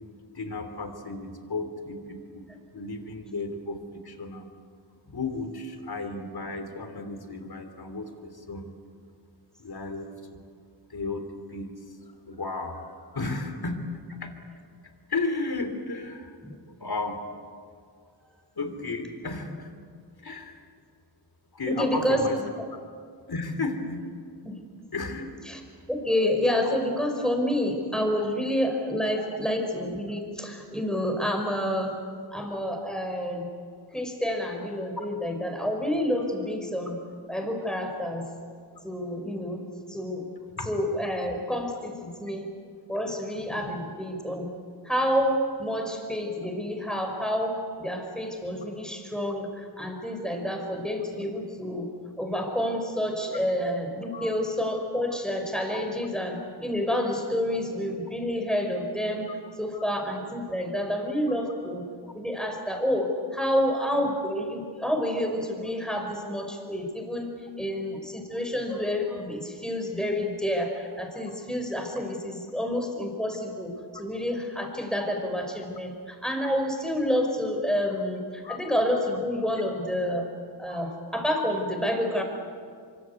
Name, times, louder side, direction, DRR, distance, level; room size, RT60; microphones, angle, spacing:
voice 1, 0.3-4.5 5.1-8.7 9.6-10.4 10.9-11.7 12.2-13.8 14.2-14.3 14.8-16.4 16.7-17.2 18.5-19.7 20.2-20.6 21.5-22.4 22.7-22.8 23.3-24.1 24.9-25.3 35.0-35.1 40.6-40.7 43.5-43.7 54.1-54.3 55.7-55.8 59.7-59.8 78.4-78.6 80.7-80.8, left 3 dB, 65° left, 8 dB, 3.3 m, -34 dB
voice 2, 21.7-22.2 24.4-24.6 25.5-25.6 25.9-32.0 32.3-33.5 33.9-37.0 37.3-38.3 38.8-40.2 40.7-42.5 42.9-44.5 44.9-51.9 52.2-59.3 59.6-61.9 62.1-67.3 67.6-73.7 74.0-80.2 80.6-82.2, equal, ahead, 3 dB, 5.7 m, -29 dB
25.0 x 25.0 x 8.4 m, 2.2 s
wide cardioid pair, 60°, 41 cm